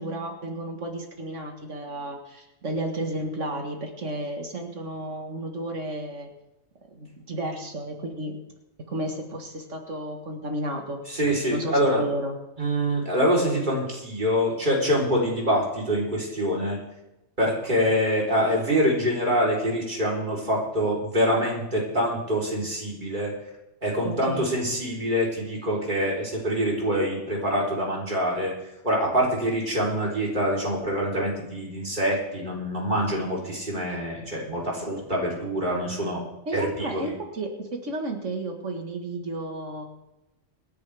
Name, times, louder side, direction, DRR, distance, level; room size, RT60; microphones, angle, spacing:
voice 1, 0.0-6.3 6.9-8.4 8.9-11.0 11.5-12.4 24.0-24.5 36.5-39.8, right 1 dB, 75° right, 3 dB, 2.0 m, -32 dB
voice 2, 11.1-12.0 12.6-16.8 17.4-23.3 23.8-28.5 28.8-36.2 36.5-37.1, equal, 40° right, -3 dB, 4.1 m, -25 dB
26.0 x 10.0 x 3.5 m, 0.92 s
omnidirectional pair, 1.3 m